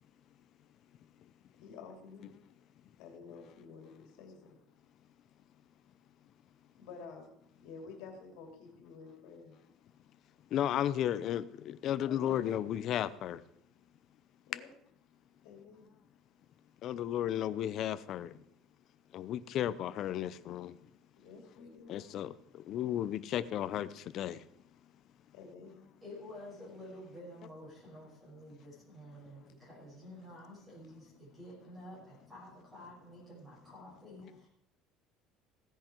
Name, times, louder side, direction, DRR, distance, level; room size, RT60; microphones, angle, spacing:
voice 1, 1.6-2.3 3.0-4.6 6.8-7.3 7.6-9.5 12.1-12.5 14.5-14.7 15.4-15.9 21.2-22.0 25.3-25.8, left 5 dB, 70° left, 2.9 m, -50 dB
voice 2, 10.5-13.4 16.8-18.3 19.1-20.7 21.9-22.3 22.7-24.4, left 11 dB, 40° left, 0.6 m, -34 dB
voice 3, 26.0-34.5, left 1 dB, 15° right, 5.9 m, -50 dB
16.0 x 10.0 x 4.5 m
cardioid pair, 165°, 0 cm